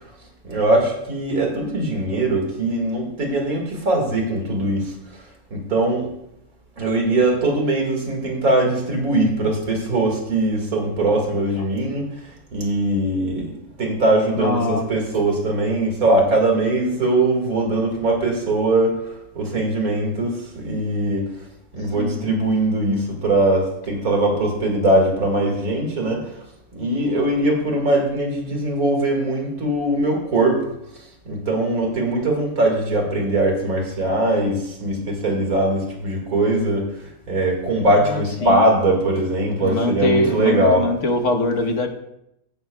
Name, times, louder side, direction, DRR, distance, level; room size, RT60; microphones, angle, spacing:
voice 1, 0.4-5.2 5.5-6.1 6.8-13.5 13.8-21.3 21.7-26.4 26.7-30.6 31.0-40.9, right 1 dB, 80° right, 1 dB, 2.5 m, -21 dB
voice 2, 14.4-14.9 21.9-22.2 38.1-38.6 39.6-41.9, left 2 dB, 60° left, 4 dB, 1.5 m, -22 dB
15.5 x 8.7 x 2.3 m, 0.82 s
omnidirectional pair, 1.5 m